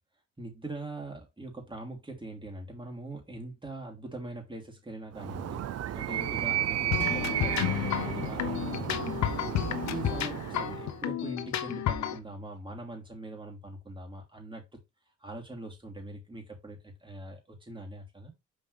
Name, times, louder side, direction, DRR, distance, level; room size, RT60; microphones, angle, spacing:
voice 1, 0.4-9.1 9.7-14.8 15.2-18.3, right 2 dB, 15° right, 3.1 m, -42 dB
Animal, 5.1-11.0, right 12 dB, 55° right, 0.6 m, -33 dB
sound 1, 6.8-12.5, left 17 dB, 85° left, 0.5 m, -40 dB
sound 2, 6.9-12.2, left 10 dB, 65° left, 0.9 m, -32 dB
6.6 x 5.1 x 3.3 m
cardioid pair, 90°, 30 cm